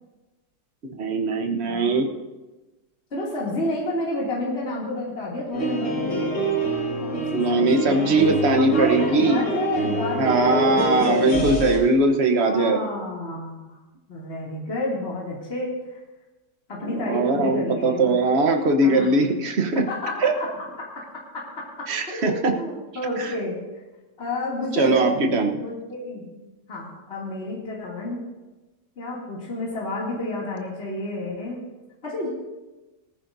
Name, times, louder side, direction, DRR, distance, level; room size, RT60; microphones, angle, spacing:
voice 1, 0.9-2.1 7.3-9.4 10.2-12.9 16.8-19.8 20.2-20.3 21.9-22.5 23.2-23.3 24.8-25.6, right 2 dB, 40° right, 4 dB, 1.2 m, -21 dB
voice 2, 1.6-2.0 3.1-6.4 7.0-8.3 8.6-10.8 12.5-13.8 14.1-16.0 16.7-18.2 18.8-19.1 19.7-20.5 21.6-21.7 22.1-23.6 24.2-25.1 25.6-28.2 29.0-31.6 32.0-32.3, left 2 dB, 35° left, -6 dB, 2.9 m, -30 dB
sound 1, 5.5-11.8, right 1 dB, 75° left, 4.9 m, -25 dB
19.0 x 14.5 x 2.7 m, 1.1 s
omnidirectional pair, 1.9 m